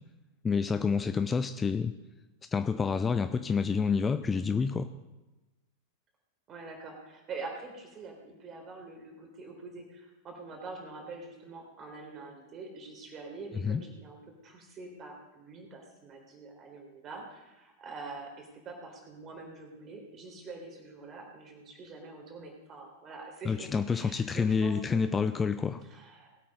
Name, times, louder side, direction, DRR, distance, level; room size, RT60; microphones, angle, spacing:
voice 1, 0.4-1.9 2.5-4.9 13.6-13.8 23.5-25.8, left 5 dB, 15° left, 11 dB, 0.5 m, -28 dB
voice 2, 6.5-25.0 25.8-26.4, right 3 dB, 30° right, 2 dB, 4.0 m, -45 dB
19.5 x 8.6 x 5.4 m, 1.1 s
figure-of-eight pair, 90°, 0 cm